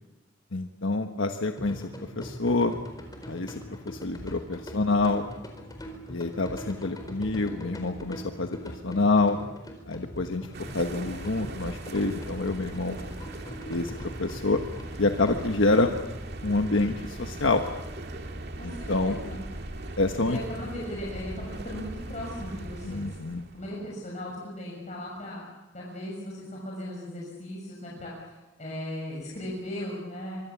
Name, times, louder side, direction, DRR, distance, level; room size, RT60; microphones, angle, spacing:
voice 1, 0.5-2.8 3.3-5.3 6.1-9.4 9.9-10.5 10.7-13.0 13.7-14.6 15.0-15.9 16.4-17.6 18.6-19.2 20.0-20.4 22.8-23.4, left 2 dB, 80° left, 5 dB, 1.3 m, -27 dB
sound 1, 1.6-15.4, equal, 20° left, 4.4 m, -42 dB
sound 2, 10.5-23.7, right 1 dB, 55° right, 2.5 m, -39 dB
voice 2, 18.6-19.4 20.2-23.0 23.5-25.4 25.7-28.1 28.6-30.4, equal, 35° left, -4 dB, 6.5 m, -37 dB
25.0 x 24.5 x 7.2 m, 1.0 s
head